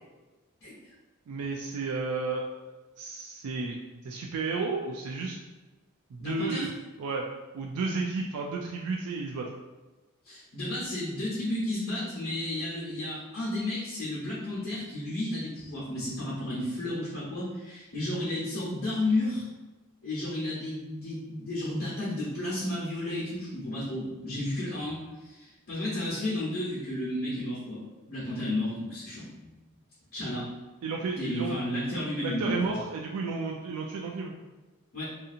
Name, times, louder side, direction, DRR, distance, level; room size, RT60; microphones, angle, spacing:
voice 1, 1.3-2.5 3.0-3.8 4.0-5.4 6.1-6.7 7.0-7.3 7.5-9.5 30.8-31.6 32.2-34.3, right 4 dB, 75° right, -1 dB, 0.4 m, -32 dB
voice 2, 6.2-6.7 10.2-19.4 20.0-27.8 28.1-29.3 30.1-30.5 31.1-32.6 34.9-35.1, left 1 dB, 70° left, -10 dB, 1.0 m, -32 dB
2.7 x 2.6 x 2.4 m, 1.2 s
head